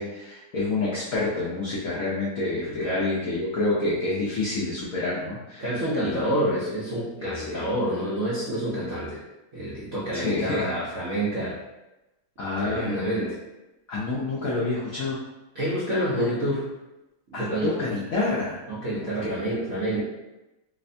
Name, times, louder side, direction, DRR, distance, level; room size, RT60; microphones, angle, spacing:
voice 1, 0.0-5.6 6.0-6.3 7.2-7.7 10.1-10.7 12.4-13.1 13.9-15.2 17.3-18.6 19.2-19.4, left 2 dB, 80° left, -7 dB, 0.7 m, -28 dB
voice 2, 2.7-3.0 5.6-9.2 9.5-11.6 12.6-13.4 15.5-16.7 17.3-17.8 18.7-20.0, right 1 dB, 60° right, -10 dB, 0.8 m, -28 dB
3.4 x 3.2 x 2.6 m, 1.0 s
omnidirectional pair, 2.4 m